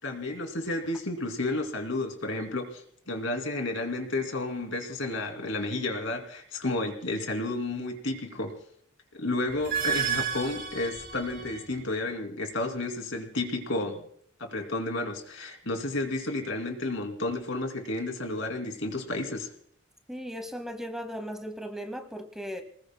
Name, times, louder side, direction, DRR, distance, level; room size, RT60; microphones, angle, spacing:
voice 1, 0.0-8.6 9.1-14.0 14.4-19.5, left 2 dB, 70° left, 5 dB, 2.7 m, -32 dB
sound 1, 9.5-11.8, right 7 dB, 50° right, 3.0 m, -31 dB
voice 2, 20.1-22.6, equal, ahead, 7 dB, 0.9 m, -37 dB
28.5 x 19.5 x 2.2 m, 0.64 s
head